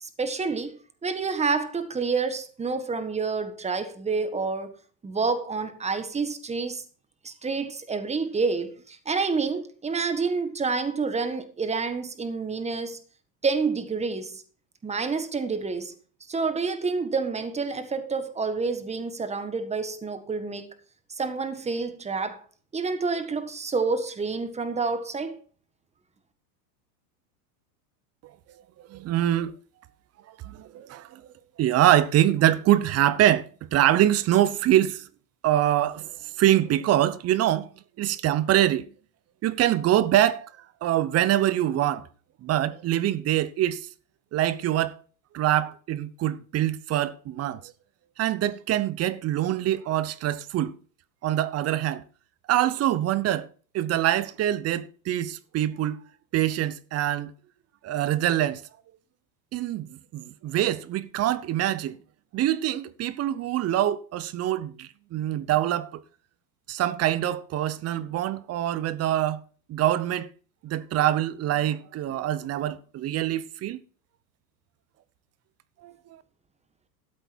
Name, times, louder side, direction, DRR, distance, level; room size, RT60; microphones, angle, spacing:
voice 1, 0.0-4.7 5.0-6.8 7.2-13.0 13.4-14.4 14.8-15.9 16.3-20.7 21.2-22.4 22.7-25.4, right 4 dB, 15° right, 1.5 m, -28 dB
voice 2, 28.9-29.5 30.4-31.2 31.6-35.1 35.4-37.7 38.0-38.9 39.4-40.5 40.8-42.1 42.4-43.8 44.3-45.0 45.3-47.7 48.2-50.8 51.2-52.0 52.5-53.5 53.7-56.0 56.3-57.3 57.8-58.6 59.5-62.0 62.3-66.0 66.7-69.4 69.7-70.3 70.6-73.8 75.8-75.9, right 12 dB, 30° right, 0.8 m, -24 dB
13.0 x 7.9 x 4.5 m
supercardioid pair, 115°, 47 cm